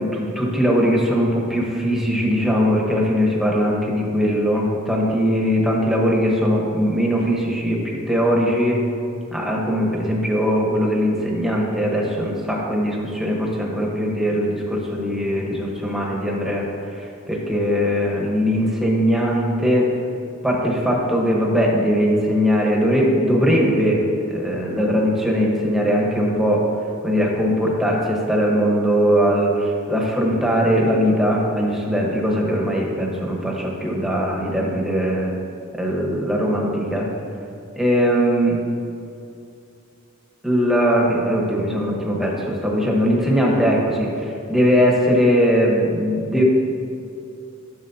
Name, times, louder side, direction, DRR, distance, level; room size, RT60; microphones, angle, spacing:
voice 1, 0.0-8.8 9.3-16.6 16.9-19.9 20.4-24.0 24.3-26.6 27.0-35.3 35.7-37.1 37.7-38.6 40.4-46.4, equal, ahead, -3 dB, 1.2 m, -20 dB
11.0 x 6.4 x 2.8 m, 2.6 s
head